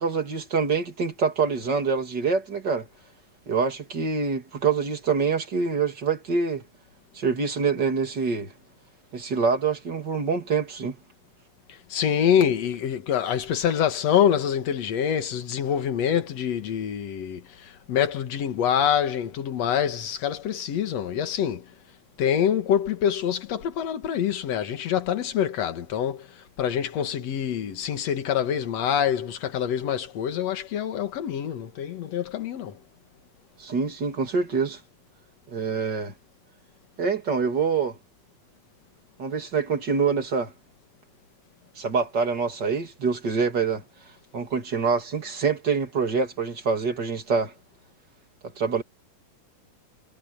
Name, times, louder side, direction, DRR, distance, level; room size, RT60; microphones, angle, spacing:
voice 1, 0.0-2.9 3.5-6.6 7.1-8.5 9.1-11.0 33.6-34.8 35.5-36.1 37.0-38.0 39.2-40.5 41.8-43.8 44.3-47.5 48.6-48.8, right 5 dB, 35° right, 3.0 m, -25 dB
voice 2, 11.9-21.7 22.2-26.3 26.6-32.8, left 9 dB, 60° left, 2.6 m, -25 dB
omnidirectional pair, 3.6 m